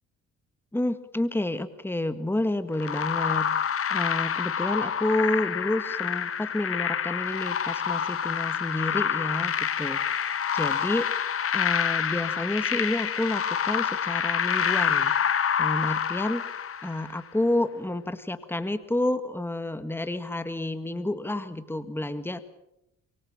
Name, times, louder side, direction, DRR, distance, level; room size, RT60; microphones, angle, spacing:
voice 1, 0.7-11.1 11.5-15.1 15.6-16.4 16.8-22.4, left 1 dB, 5° left, 10 dB, 1.7 m, -30 dB
sound 1, 2.8-17.2, left 8 dB, 50° left, 1.7 m, -27 dB
25.0 x 23.5 x 7.2 m, 0.81 s
cardioid pair, 90°, 30 cm